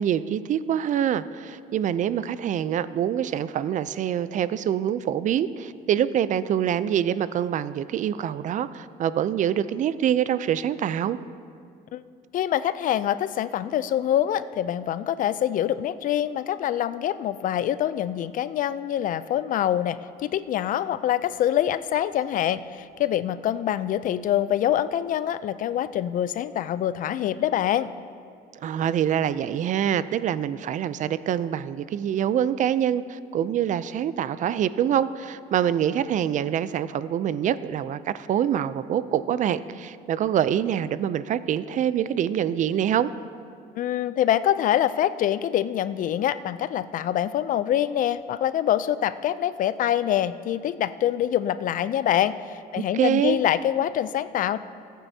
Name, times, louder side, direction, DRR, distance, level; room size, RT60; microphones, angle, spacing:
voice 1, 0.0-11.2 28.6-43.1 52.9-53.4, right 10 dB, 50° right, 15 dB, 0.4 m, -25 dB
voice 2, 12.3-27.9 43.8-54.6, left 11 dB, 55° left, 15 dB, 0.4 m, -25 dB
19.0 x 9.1 x 2.7 m, 2.3 s
cardioid pair, 110°, 17 cm